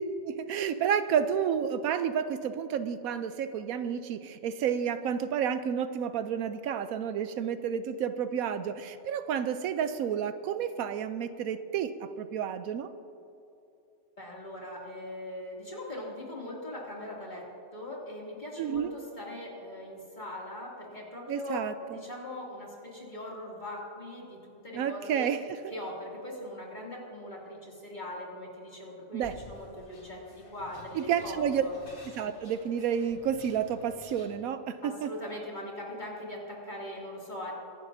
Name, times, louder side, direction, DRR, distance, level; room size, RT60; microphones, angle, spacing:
voice 1, 0.0-12.9 18.6-18.9 21.3-22.0 24.7-25.4 29.1-29.4 30.9-31.6 32.2-35.1, right 8 dB, 80° right, 11 dB, 1.0 m, -30 dB
voice 2, 14.2-17.5 17.7-24.4 24.6-25.3 25.7-30.2 30.5-31.7 34.8-37.5, left 1 dB, 30° left, -4 dB, 2.7 m, -40 dB
sound 1, 29.2-34.3, left 1 dB, 70° left, 2.4 m, -52 dB
24.5 x 11.0 x 2.7 m, 2.8 s
omnidirectional pair, 1.5 m